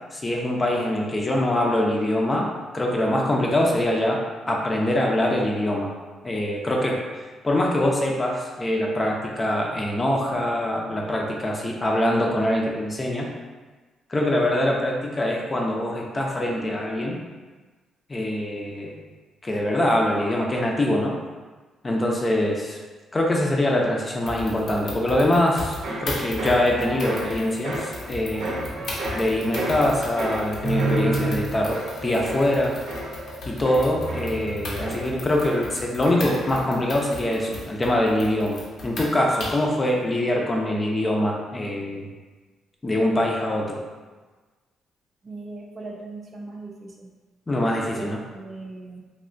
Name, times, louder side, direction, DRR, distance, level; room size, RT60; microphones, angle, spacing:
voice 1, 0.1-2.5 2.7-4.2 4.5-5.9 6.2-13.3 14.1-17.2 18.1-18.9 19.4-21.1 21.8-22.8 23.1-28.8 29.1-32.7 33.5-42.1 42.8-43.8 47.5-48.2, left 1 dB, 25° left, -1 dB, 0.5 m, -24 dB
sound 1, 24.3-39.7, left 2 dB, 65° left, 0.8 m, -37 dB
sound 2, 25.3-36.9 37.2-37.7, right 2 dB, 90° right, 0.7 m, -31 dB
voice 2, 45.2-47.1 48.0-49.0, right 2 dB, 40° right, 0 dB, 0.4 m, -39 dB
3.2 x 2.6 x 2.6 m, 1.3 s
cardioid pair, 90°, 0 cm